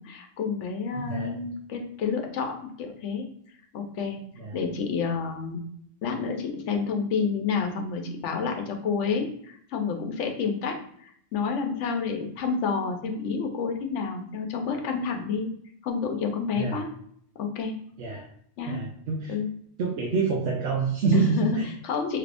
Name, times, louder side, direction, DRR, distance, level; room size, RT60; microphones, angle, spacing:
voice 1, 0.0-3.3 3.7-4.2 4.5-5.6 6.0-15.5 15.8-16.9 17.4-17.7 18.6-18.8 19.3-19.5 21.1-22.2, left 5 dB, 90° left, 4 dB, 1.0 m, -29 dB
voice 2, 0.9-1.3 4.4-4.6 16.5-16.8 18.0-18.3 18.7-19.3 19.8-21.7, right 4 dB, 85° right, -2 dB, 1.0 m, -27 dB
3.2 x 2.5 x 3.4 m, 0.65 s
omnidirectional pair, 1.2 m